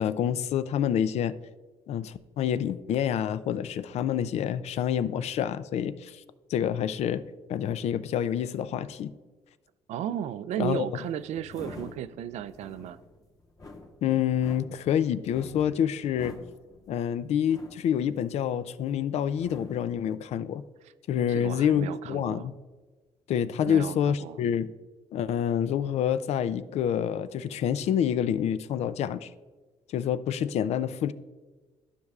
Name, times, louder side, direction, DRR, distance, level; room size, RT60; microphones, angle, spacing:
voice 1, 0.0-1.4 1.9-6.2 6.5-7.2 7.5-9.1 10.6-10.9 14.0-16.4 16.9-20.6 21.1-22.5 23.3-24.7 25.1-29.3 29.9-31.1, left 9 dB, 65° left, 14 dB, 0.4 m, -27 dB
voice 2, 9.9-13.0 21.3-22.5 23.6-24.4, right 10 dB, 70° right, 14 dB, 0.4 m, -34 dB
sound 1, 11.0-18.9 19.2-20.0, left 2 dB, 30° left, 1.2 m, -47 dB
12.5 x 5.3 x 2.4 m, 1.3 s
supercardioid pair, 75°, 12 cm